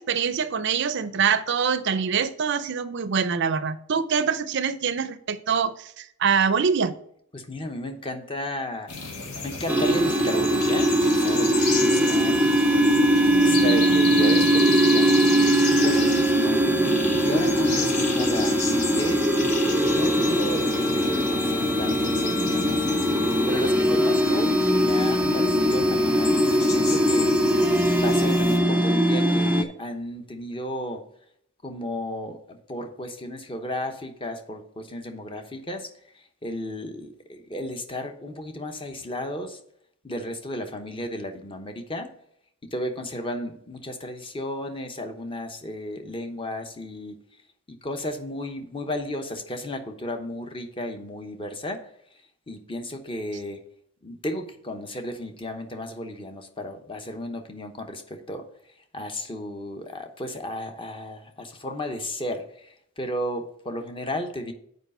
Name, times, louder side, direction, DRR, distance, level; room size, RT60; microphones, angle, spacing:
voice 1, 0.0-7.0, right 6 dB, 55° right, 0.5 m, -24 dB
voice 2, 7.3-8.9 9.4-19.2 19.7-22.9 23.5-27.5 28.0-31.0 31.6-39.6 40.0-42.1 42.6-47.2 47.7-51.9 52.5-53.6 54.0-58.5 58.9-64.5, left 1 dB, 25° left, 0.9 m, -34 dB
sound 1, 8.9-28.6, left 4 dB, 90° left, 1.8 m, -32 dB
sound 2, 9.7-29.6, right 1 dB, 5° right, 0.5 m, -21 dB
8.1 x 4.9 x 5.4 m
head